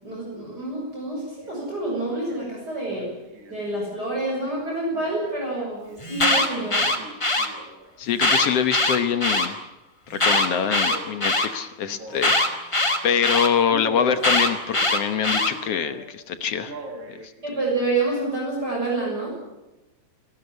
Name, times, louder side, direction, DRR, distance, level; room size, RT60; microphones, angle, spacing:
voice 1, 0.0-3.1 3.5-6.8 17.4-19.3, right 2 dB, 30° right, -3 dB, 7.2 m, -28 dB
Male speech man speaking, 1.4-1.7 2.0-2.5 2.9-6.1 6.6-7.9 8.2-9.0 10.2-12.6 13.0-13.2 13.7-16.1 16.5-17.3 17.7-17.8, right 1 dB, 80° right, 4.9 m, -41 dB
Alarm, 6.0-7.5 8.1-9.5 10.1-11.5 12.2-13.5 14.2-15.5, left 2 dB, 15° left, 1.2 m, -21 dB
voice 2, 8.0-9.6 10.1-16.7 17.1-17.2, left 8 dB, 60° left, 10 dB, 1.8 m, -25 dB
28.5 x 13.5 x 9.9 m, 0.99 s
omnidirectional pair, 3.8 m